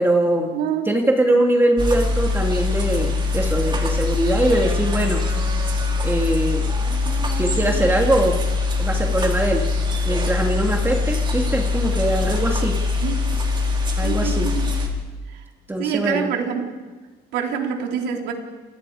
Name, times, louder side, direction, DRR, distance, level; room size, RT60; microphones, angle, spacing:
voice 1, 0.0-0.5 0.8-5.3 6.0-6.7 7.3-8.4 8.8-9.7 10.0-12.8 14.0-14.5 15.7-16.3, right 1 dB, 15° right, 1 dB, 2.6 m, -21 dB
voice 2, 0.5-0.9 13.0-13.2 14.0-14.7 15.8-16.6 17.3-18.3, right 7 dB, 85° right, 2 dB, 3.9 m, -25 dB
sound 1, 1.8-14.9, left 3 dB, 30° right, 4.4 m, -22 dB
29.0 x 22.5 x 5.0 m, 1.3 s
cardioid pair, 110°, 17 cm